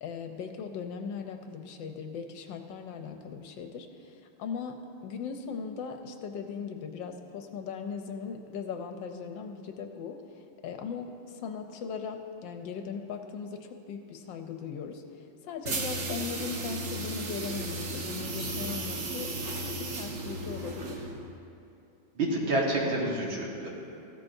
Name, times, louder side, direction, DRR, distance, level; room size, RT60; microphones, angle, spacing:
voice 1, 0.0-3.9 4.4-4.8 5.0-10.2 10.6-11.1 11.4-15.0 15.5-19.3 19.6-19.7 20.0-21.0, left 6 dB, 75° left, 5 dB, 1.3 m, -38 dB
sound 1, 15.6-21.3, right 2 dB, 45° right, 1.0 m, -35 dB
voice 2, 22.2-23.7, right 1 dB, 75° right, -3 dB, 2.4 m, -28 dB
15.0 x 13.0 x 2.6 m, 2.7 s
omnidirectional pair, 2.2 m